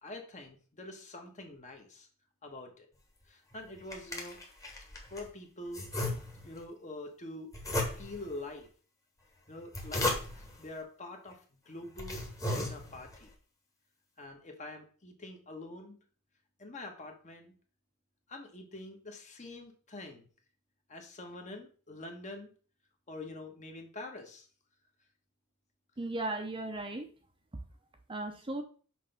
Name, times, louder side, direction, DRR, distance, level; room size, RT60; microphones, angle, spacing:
voice 1, 0.0-2.1 2.4-2.9 3.3-4.4 5.1-5.9 6.4-7.5 8.0-8.7 9.5-10.1 10.6-11.4 11.7-12.2 12.5-13.3 14.2-16.0 16.6-17.5 18.3-20.3 20.9-22.5 23.1-24.5, left 2 dB, 35° left, 3 dB, 1.2 m, -45 dB
sound 1, 3.5-5.3 5.7-6.6 7.5-8.3 9.5-10.6 11.3-11.4 11.8-13.2, left 2 dB, 15° left, 1.3 m, -35 dB
voice 2, 26.0-27.1 28.1-28.6, right 2 dB, 25° right, 5 dB, 0.7 m, -36 dB
6.0 x 3.3 x 5.8 m, 0.40 s
head